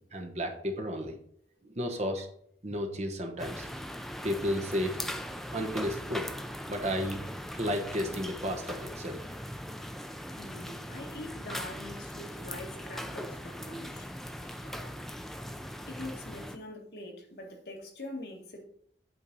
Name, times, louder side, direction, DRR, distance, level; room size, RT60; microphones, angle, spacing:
voice 1, 0.1-1.1 1.6-2.3 2.6-3.7 4.2-5.0 5.5-6.3 6.7-7.3 7.5-9.2, equal, 40° right, 3 dB, 1.0 m, -33 dB
sound 1, 3.4-16.6, equal, ahead, 0.4 m, -40 dB
voice 2, 10.4-14.1 14.4-15.0 15.9-18.6, left 1 dB, 60° left, 1 dB, 1.6 m, -44 dB
8.4 x 3.6 x 5.3 m, 0.65 s
head